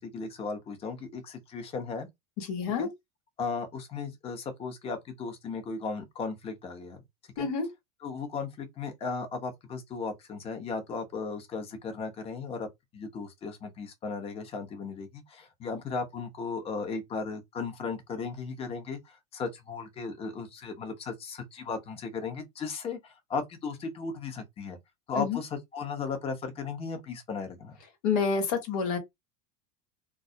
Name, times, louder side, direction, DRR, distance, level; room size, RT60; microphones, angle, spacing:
voice 1, 0.0-2.1 2.8-2.9 3.4-7.0 7.4-7.5 8.0-12.7 12.9-24.8 25.1-27.8, left 4 dB, 30° left, 0.8 m, -36 dB
voice 2, 2.4-2.9 7.4-7.7 25.2-25.4 28.0-29.0, left 5 dB, 75° left, 1.2 m, -28 dB
2.3 x 2.0 x 2.7 m
supercardioid pair, 110°, 19 cm